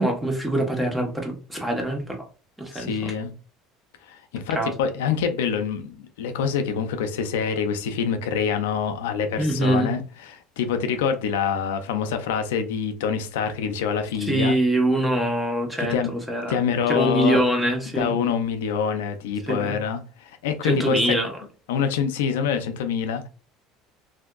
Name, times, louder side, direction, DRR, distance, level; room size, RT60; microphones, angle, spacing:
voice 1, 0.0-2.2 2.6-3.1 4.5-4.7 9.4-9.9 14.2-16.6 16.9-18.1 19.5-19.8 20.6-21.3, right 1 dB, 10° right, 1.1 m, -24 dB
voice 2, 2.7-3.3 4.1-14.6 15.8-16.1 16.5-17.4 18.0-21.2 21.7-23.3, left 7 dB, 90° left, 0.5 m, -26 dB
3.4 x 2.6 x 2.3 m
supercardioid pair, 95°, 0 cm